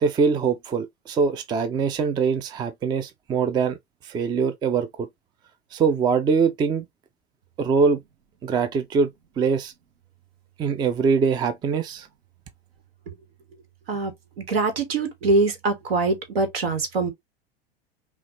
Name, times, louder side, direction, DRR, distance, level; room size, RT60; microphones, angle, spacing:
voice 1, 0.0-3.8 4.0-5.1 5.7-6.9 7.6-8.0 8.4-9.1 9.4-9.7 10.6-12.1, right 5 dB, 15° right, 0.4 m, -23 dB
voice 2, 14.5-17.1, right 3 dB, 65° right, 1.6 m, -23 dB
5.6 x 2.4 x 2.9 m
figure-of-eight pair, 85°, 32 cm